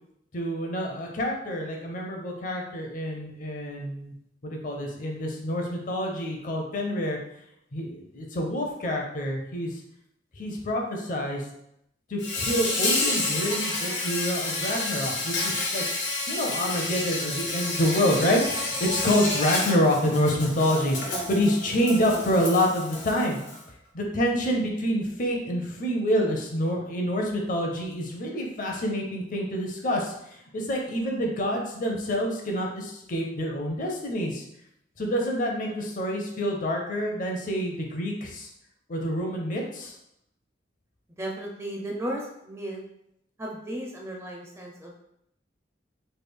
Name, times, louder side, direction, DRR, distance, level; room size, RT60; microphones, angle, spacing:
voice 1, 0.3-4.1 4.4-7.2 7.7-9.8 10.4-11.5 12.1-15.8 16.3-23.4 23.9-34.4 35.0-38.5 38.9-40.0, equal, 45° left, 1 dB, 0.6 m, -27 dB
Insect, 12.2-23.6, left 2 dB, 80° left, 0.8 m, -30 dB
voice 2, 41.2-42.8 43.4-45.0, right 1 dB, 15° right, -1 dB, 0.4 m, -35 dB
3.2 x 2.3 x 3.4 m, 0.77 s
head